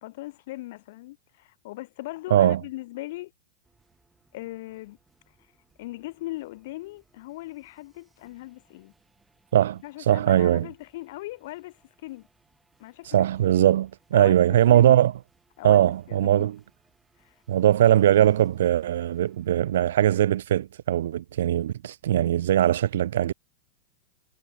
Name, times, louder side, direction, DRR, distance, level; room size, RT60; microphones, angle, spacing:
voice 1, 0.0-3.3 4.3-5.0 5.8-8.9 9.8-12.3 12.8-13.3 14.1-15.0 15.6-16.5 17.2-17.3, left 18 dB, 65° left, 1.8 m, -39 dB
voice 2, 2.3-2.6 9.5-10.7 13.1-15.1 15.6-16.6 17.5-23.3, right 11 dB, 80° right, 0.3 m, -20 dB
sound 1, 3.6-20.1, right 3 dB, 10° right, 7.1 m, -67 dB
supercardioid pair, 135°, 0 cm